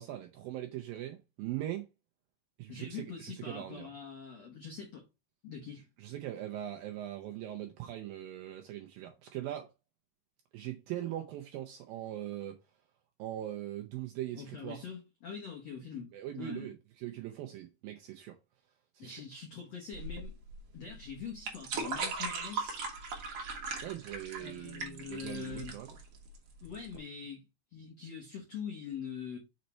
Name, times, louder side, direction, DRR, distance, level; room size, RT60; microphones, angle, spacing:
voice 1, 0.0-1.9 2.6-3.9 6.0-9.7 10.5-12.5 13.2-14.8 16.1-18.4 18.9-19.2 23.8-25.9, right 13 dB, 80° right, 2.1 m, -41 dB
voice 2, 2.7-5.0 5.4-5.8 14.3-16.7 19.0-20.4 20.7-22.8 24.4-25.8 26.6-27.5 27.7-29.4, left 6 dB, 80° left, 1.4 m, -43 dB
sound 1, 19.9-27.0, right 4 dB, 60° right, 1.7 m, -39 dB
6.5 x 4.1 x 4.3 m
omnidirectional pair, 4.9 m